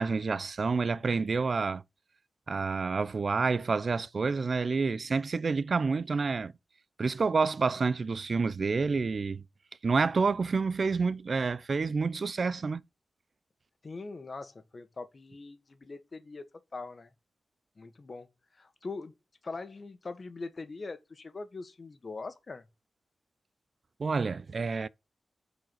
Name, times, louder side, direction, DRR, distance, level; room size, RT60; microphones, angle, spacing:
voice 1, 0.0-1.8 2.5-6.5 7.0-9.4 9.8-12.8 24.0-24.9, right 4 dB, 55° right, 0.5 m, -28 dB
voice 2, 13.8-17.1 17.8-18.3 18.5-19.1 19.4-22.6, left 3 dB, 45° left, 1.6 m, -42 dB
9.2 x 5.0 x 6.4 m
wide cardioid pair, 80°, 0 cm